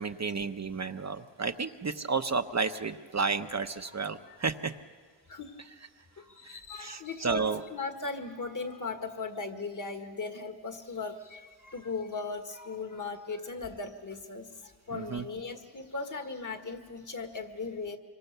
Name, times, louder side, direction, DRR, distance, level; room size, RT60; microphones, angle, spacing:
voice 1, 0.0-4.7 6.5-7.6 14.9-15.2, right 4 dB, 40° right, 7 dB, 0.9 m, -32 dB
voice 2, 5.3-5.7 6.2-18.0, left 4 dB, 45° left, 6 dB, 1.9 m, -38 dB
26.0 x 24.5 x 6.8 m, 1.5 s
wide cardioid pair, 100°, 43 cm